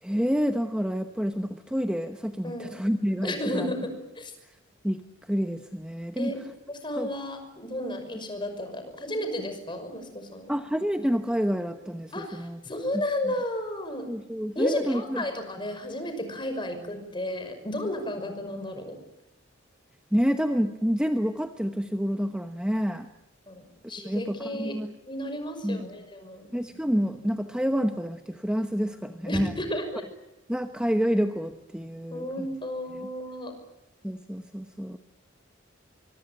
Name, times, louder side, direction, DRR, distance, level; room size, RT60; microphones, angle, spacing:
voice 1, 0.0-3.7 4.8-5.0 5.3-6.3 7.0-7.1 10.5-12.6 12.9-13.0 14.1-15.2 20.1-23.1 24.0-24.9 25.6-25.9 26.5-29.5 30.5-32.5 34.0-35.0, equal, 5° right, 7 dB, 0.9 m, -28 dB
voice 2, 2.4-2.8 3.2-4.3 6.2-6.4 6.7-10.5 12.1-14.1 14.5-18.9 22.7-22.9 23.5-24.8 25.1-26.5 29.3-30.0 32.1-33.5, left 1 dB, 25° left, 7 dB, 5.9 m, -33 dB
24.5 x 24.0 x 9.1 m, 0.93 s
head